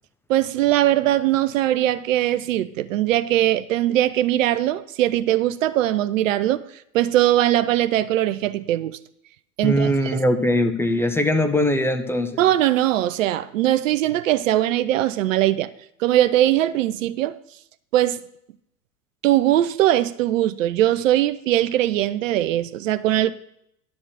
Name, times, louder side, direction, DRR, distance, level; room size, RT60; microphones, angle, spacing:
voice 1, 0.3-6.7 6.9-9.0 9.6-10.2 12.4-15.7 16.0-17.4 17.9-18.2 19.2-23.3, right 13 dB, 55° right, 0.6 m, -20 dB
voice 2, 9.6-12.4, left 1 dB, 5° left, 0.6 m, -21 dB
11.5 x 4.4 x 7.3 m
hypercardioid pair, 105°, 48 cm